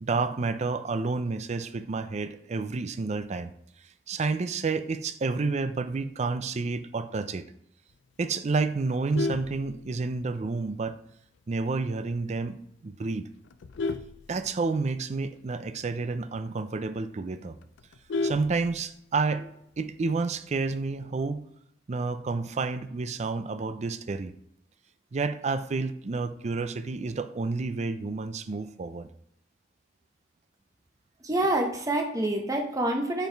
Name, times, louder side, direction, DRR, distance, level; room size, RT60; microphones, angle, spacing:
voice 1, 0.0-3.5 4.1-7.5 8.2-11.0 11.5-12.6 12.8-13.3 14.3-17.6 18.2-21.4 21.9-24.4 25.1-29.1, right 4 dB, 40° right, 11 dB, 0.4 m, -30 dB
Vehicle horn car horn honking, 8.9-10.4 10.8-11.1 11.4-11.5 11.9-12.0 12.3-12.7 13.2-15.0 15.4-15.5 15.8-15.9 16.3-16.4 16.8-16.9 17.1-19.2 20.3-20.8, left 3 dB, 90° left, 0.4 m, -34 dB
voice 2, 31.2-33.3, right 1 dB, 20° right, 2 dB, 0.9 m, -27 dB
5.5 x 4.6 x 4.5 m, 0.75 s
head